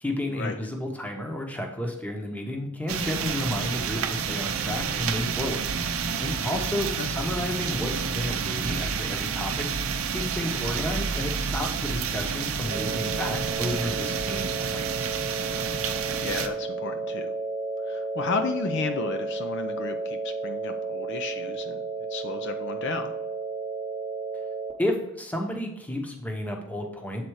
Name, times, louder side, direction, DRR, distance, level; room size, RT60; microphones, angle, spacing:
voice 1, 0.0-5.8 6.2-9.7 10.1-15.2 24.8-27.2, left 1 dB, 5° left, 2 dB, 0.9 m, -32 dB
sound 1, 2.9-16.5, right 6 dB, 65° right, 0.6 m, -29 dB
sound 2, 12.7-24.7, right 4 dB, 30° right, 0.9 m, -33 dB
voice 2, 16.2-17.4 17.8-21.8 22.1-23.1, left 4 dB, 55° left, 7 dB, 0.5 m, -33 dB
7.7 x 4.1 x 4.7 m, 0.85 s
head